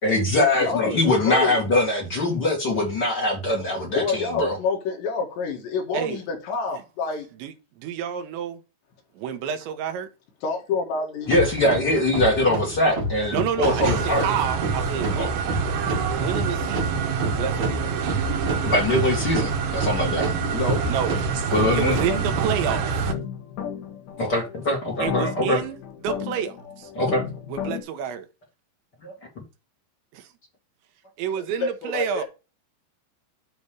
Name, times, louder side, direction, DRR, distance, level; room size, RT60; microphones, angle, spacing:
voice 1, 0.0-4.6 11.3-14.3 15.1-15.3 18.6-20.3 21.5-22.0 24.2-25.6 26.9-27.2 29.0-29.1, left 1 dB, 40° left, 1.6 m, -22 dB
voice 2, 0.6-1.6 3.9-7.3 10.4-11.3 20.4-20.8 31.6-32.3, left 4 dB, 75° left, 4.3 m, -27 dB
voice 3, 7.8-8.6 9.2-10.1 13.3-15.4 16.1-18.0 20.8-21.2 21.7-23.1 25.0-25.8 26.0-26.9 27.5-28.3 30.1-30.3 31.2-32.2, right 8 dB, 85° right, 3.4 m, -29 dB
sound 1, 11.3-23.1, right 1 dB, 50° right, 1.5 m, -31 dB
sound 2, 13.6-23.1, right 6 dB, 70° right, 2.8 m, -26 dB
sound 3, 21.8-27.8, left 8 dB, 60° left, 2.3 m, -35 dB
9.4 x 3.2 x 6.8 m
omnidirectional pair, 5.1 m